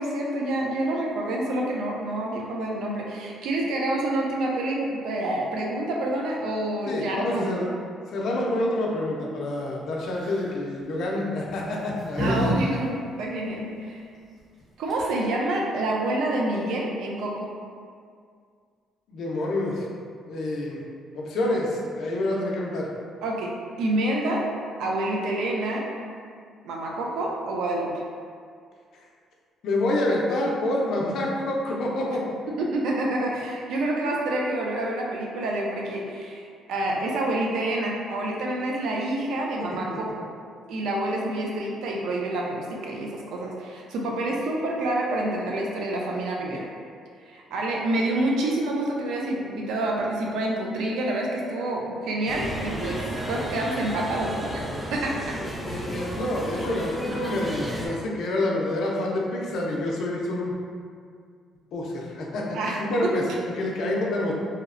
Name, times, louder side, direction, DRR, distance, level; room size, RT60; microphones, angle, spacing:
voice 1, 0.0-7.6 12.2-14.0 14.8-17.5 23.2-23.5 23.8-24.5 24.8-25.9 26.6-27.9 32.5-40.3 40.7-46.7 47.3-55.4 62.5-63.1, right 1 dB, 75° right, -1 dB, 0.4 m, -28 dB
voice 2, 6.9-7.7 8.1-12.3 19.1-19.9 20.2-20.8 21.1-22.9 29.6-32.2 39.7-40.0 55.6-60.5 61.7-63.2 63.6-64.3, left 1 dB, 65° left, -2 dB, 0.4 m, -27 dB
sound 1, 10.1-10.5 11.5-12.6 12.8-12.9 14.6-14.7 14.9-15.3, equal, 20° right, 0.9 m, -29 dB
sound 2, 52.3-57.9, right 1 dB, 5° right, 0.3 m, -33 dB
2.8 x 2.0 x 2.5 m, 2.1 s
cardioid pair, 140°, 0 cm